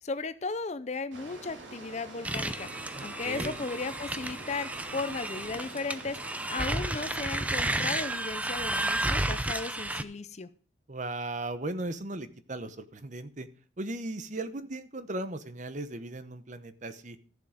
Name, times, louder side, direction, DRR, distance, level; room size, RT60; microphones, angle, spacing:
voice 1, 0.0-2.7 3.0-6.2 6.5-10.5, left 3 dB, 35° left, 14 dB, 0.6 m, -36 dB
sound 1, 1.1-8.2, right 2 dB, 85° right, 2.6 m, -46 dB
sound 2, 2.2-10.0, right 1 dB, 10° right, 0.5 m, -32 dB
voice 2, 2.9-3.6 10.9-13.5 13.8-17.2, right 2 dB, 40° right, 12 dB, 0.9 m, -37 dB
13.5 x 7.3 x 5.1 m, 0.43 s
head